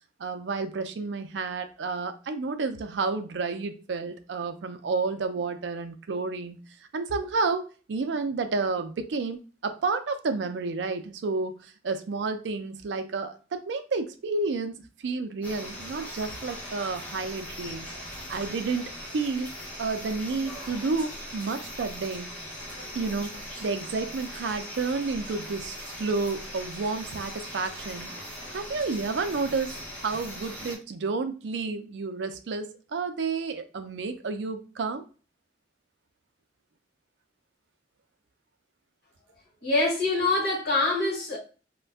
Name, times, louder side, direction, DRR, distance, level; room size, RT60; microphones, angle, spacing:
voice 1, 0.2-6.6 6.9-14.7 15.0-17.9 18.3-19.5 19.8-22.3 22.9-28.1 28.5-35.0, right 4 dB, 80° right, 0.4 m, -30 dB
sound 1, 15.4-30.8, equal, 10° left, 0.8 m, -40 dB
voice 2, 39.6-41.4, left 2 dB, 60° left, 1.2 m, -25 dB
2.4 x 2.2 x 3.4 m
head